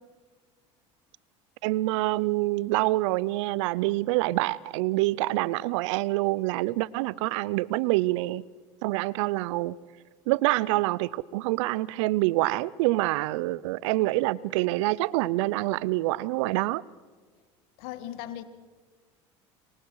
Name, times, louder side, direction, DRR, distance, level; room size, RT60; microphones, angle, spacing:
voice 1, 1.6-8.4 8.8-9.8 10.3-16.8, right 19 dB, 75° right, 0.6 m, -26 dB
voice 2, 17.8-18.4, left 12 dB, 70° left, 1.9 m, -37 dB
28.5 x 23.5 x 4.8 m
hypercardioid pair, 85°, 16 cm